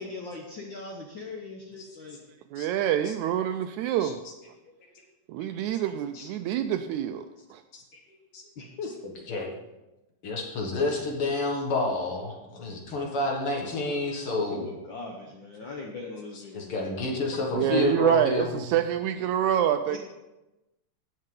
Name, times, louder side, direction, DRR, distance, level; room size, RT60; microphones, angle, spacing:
voice 1, 0.0-2.2 8.6-8.9 14.5-16.9 17.3-17.7 19.9-20.0, left 3 dB, 90° left, 0 dB, 1.0 m, -40 dB
voice 2, 2.5-4.2 5.3-7.3 7.5-7.6 17.5-20.0, right 10 dB, 80° right, 9 dB, 1.7 m, -26 dB
voice 3, 8.3-8.7 9.3-9.5 10.2-14.6 16.5-18.6, left 2 dB, 50° left, 0 dB, 2.1 m, -29 dB
17.0 x 6.5 x 3.8 m, 1.0 s
omnidirectional pair, 3.7 m